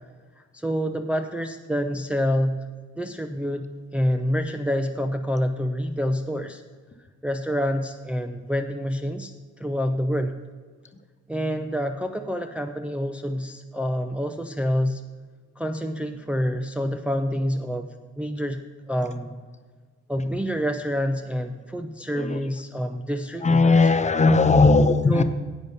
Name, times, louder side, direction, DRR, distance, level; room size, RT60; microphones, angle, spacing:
voice 1, 0.5-2.6 3.0-3.7 3.9-6.6 7.2-9.3 9.6-10.4 11.3-15.0 15.6-17.9 18.2-18.6 18.9-19.4 20.1-23.8 25.1-25.2, equal, 5° right, 5 dB, 0.5 m, -27 dB
voice 2, 23.4-25.2, left 3 dB, 25° left, 9 dB, 0.8 m, -18 dB
11.0 x 7.9 x 5.2 m, 1.5 s
cardioid pair, 90°, 30 cm